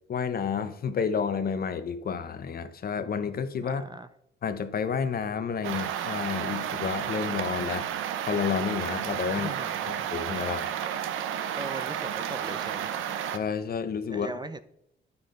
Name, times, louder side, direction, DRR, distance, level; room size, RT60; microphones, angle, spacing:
voice 1, 0.1-3.8 4.4-7.9 8.2-9.5 9.8-10.7 13.3-14.3, left 6 dB, 50° left, 0.9 m, -30 dB
voice 2, 3.6-4.1 9.3-10.1 11.5-13.0 14.1-14.6, right 2 dB, 20° right, 0.6 m, -39 dB
sound 1, 5.6-13.4, right 9 dB, 85° right, 0.8 m, -32 dB
9.6 x 7.1 x 3.9 m
cardioid pair, 90°, 20 cm